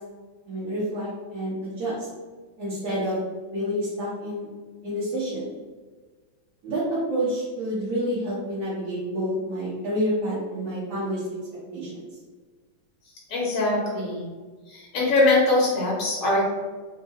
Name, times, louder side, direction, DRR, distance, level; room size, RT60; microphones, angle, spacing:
voice 1, 0.5-2.1 2.6-3.2 3.5-4.5 4.8-5.5 6.6-11.2 11.7-12.0, equal, 50° right, -12 dB, 1.4 m, -28 dB
voice 2, 13.3-14.3 14.7-16.5, left 2 dB, 60° left, -4 dB, 0.8 m, -22 dB
3.6 x 2.6 x 2.8 m, 1.4 s
omnidirectional pair, 2.4 m